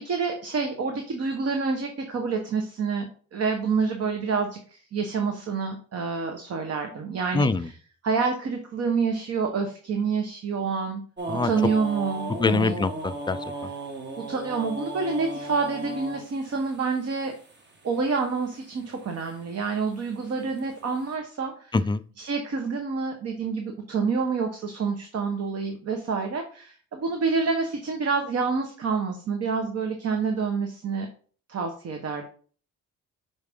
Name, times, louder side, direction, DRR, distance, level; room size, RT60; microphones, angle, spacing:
voice 1, 0.0-3.1 3.3-7.8 8.0-11.0 11.4-12.8 14.3-17.3 17.8-21.8 22.2-31.1 31.5-32.2, right 5 dB, 55° right, 4 dB, 1.1 m, -28 dB
voice 2, 7.3-7.7 11.3-11.5 12.4-13.4 21.7-22.0, left 3 dB, 15° left, 13 dB, 0.3 m, -23 dB
sound 1, 11.2-18.2 18.9-19.4 19.7-20.9, right 2 dB, 35° right, 1.4 m, -36 dB
5.6 x 4.7 x 3.6 m, 0.43 s
cardioid pair, 90°, 30 cm